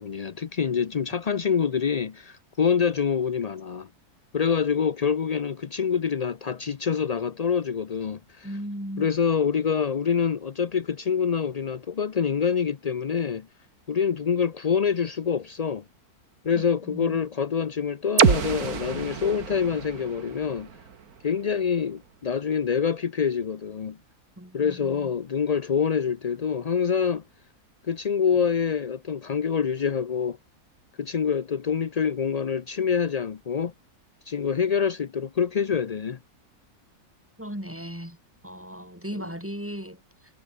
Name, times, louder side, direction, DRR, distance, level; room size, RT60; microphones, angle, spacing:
voice 1, 0.0-3.9 4.3-8.5 9.0-13.5 13.9-15.8 16.4-20.7 21.2-24.0 24.5-27.2 27.9-30.4 31.0-33.7 34.3-36.2 39.2-39.3, left 6 dB, 65° left, 0.4 m, -26 dB
voice 2, 8.4-9.1 16.5-17.2 24.4-25.1 37.4-38.2 38.4-40.0, equal, 10° right, 5.6 m, -37 dB
sound 1, 18.2-22.0, right 7 dB, 70° right, 2.0 m, -27 dB
omnidirectional pair, 1.6 m